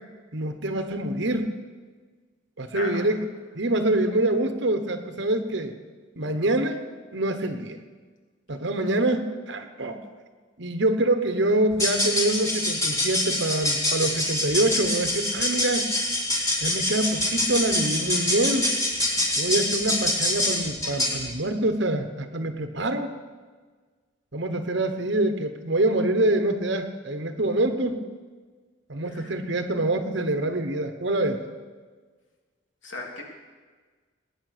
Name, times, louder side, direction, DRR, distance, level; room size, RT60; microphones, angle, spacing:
voice 1, 0.3-1.5 2.6-3.3 3.6-5.7 6.2-6.8 7.1-7.8 8.5-10.1 10.6-15.9 16.6-18.7 19.3-23.1 24.3-28.0 28.9-31.4, right 1 dB, 65° right, 7 dB, 1.1 m, -25 dB
sound 1, 11.7-21.2, left 1 dB, 15° left, 3.9 m, -25 dB
voice 2, 29.0-29.3 32.8-33.2, left 2 dB, 75° left, 0 dB, 3.1 m, -36 dB
20.5 x 9.9 x 6.8 m, 1.5 s
head